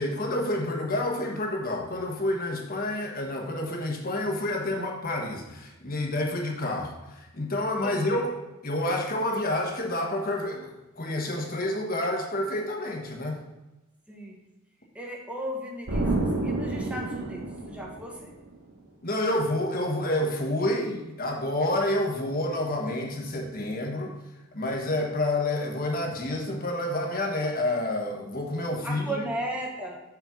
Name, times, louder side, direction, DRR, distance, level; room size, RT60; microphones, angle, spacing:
voice 1, 0.0-6.9 7.3-8.3 8.6-10.7 11.0-13.4 19.0-24.1 24.5-29.2, left 1 dB, 45° left, 1 dB, 1.3 m, -28 dB
voice 2, 7.7-8.2 14.1-14.4 14.9-18.3 28.8-30.0, right 1 dB, 5° right, -1 dB, 1.3 m, -36 dB
Explosion, 15.9-18.5, right 2 dB, 70° right, 1.3 m, -29 dB
7.1 x 4.4 x 5.8 m, 1.0 s
head